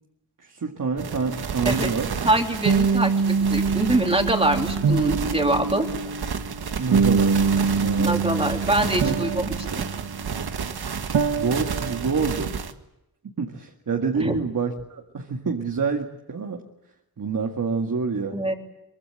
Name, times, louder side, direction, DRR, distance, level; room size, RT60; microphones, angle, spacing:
voice 1, 0.4-2.1 6.8-8.2 9.0-9.2 9.7-9.8 11.3-12.5 13.2-16.6 17.2-18.5, right 5 dB, 60° right, 2 dB, 2.1 m, -27 dB
sound 1, 1.0-12.7, right 5 dB, 90° right, 1.7 m, -25 dB
voice 2, 2.2-5.8 7.9-9.9 14.2-14.3 18.3-18.5, right 1 dB, 15° right, 2 dB, 3.2 m, -24 dB
24.0 x 23.0 x 8.9 m, 0.88 s
wide cardioid pair, 120°, 37 cm